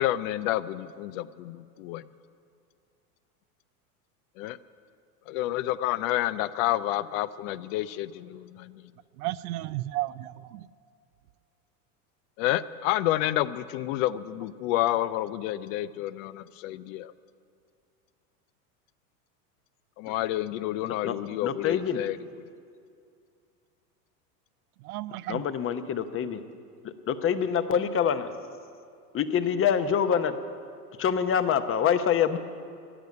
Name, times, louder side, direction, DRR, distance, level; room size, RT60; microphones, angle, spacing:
voice 1, 0.0-2.0 4.4-4.6 5.3-8.8 12.4-17.1 20.0-22.2, left 14 dB, 60° left, 15 dB, 0.6 m, -29 dB
voice 2, 9.2-10.7 24.8-25.4, right 16 dB, 70° right, 16 dB, 0.6 m, -33 dB
voice 3, 20.8-21.2 21.4-22.0 25.3-26.4 26.8-28.3 29.1-30.4 31.0-32.4, left 8 dB, 30° left, 10 dB, 0.9 m, -26 dB
14.0 x 10.5 x 9.4 m, 2.4 s
supercardioid pair, 115°, 46 cm